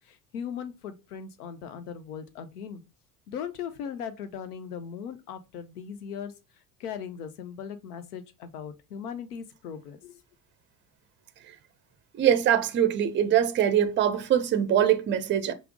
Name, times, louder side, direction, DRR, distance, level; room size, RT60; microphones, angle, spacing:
voice 1, 0.1-2.8 3.3-6.3 6.8-10.2, left 7 dB, 70° left, 0.8 m, -38 dB
voice 2, 12.1-15.5, right 10 dB, 25° right, 0.5 m, -23 dB
5.7 x 2.0 x 3.6 m
figure-of-eight pair, 60°, 47 cm